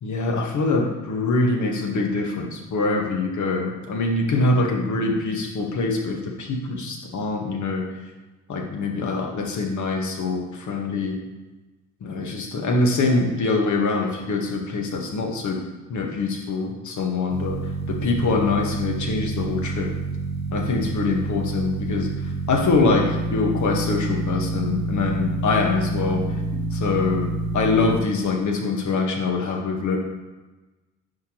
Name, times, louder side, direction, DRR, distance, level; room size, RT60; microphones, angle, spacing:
voice 1, 0.0-7.8 8.5-11.2 12.0-15.6 15.9-19.9 20.5-26.2 26.7-27.3 27.5-30.0, left 3 dB, 45° left, 1 dB, 1.6 m, -24 dB
sound 1, 17.3-28.0, right 3 dB, 85° right, 1.1 m, -28 dB
10.0 x 4.9 x 3.1 m, 1.1 s
figure-of-eight pair, 50°, 40 cm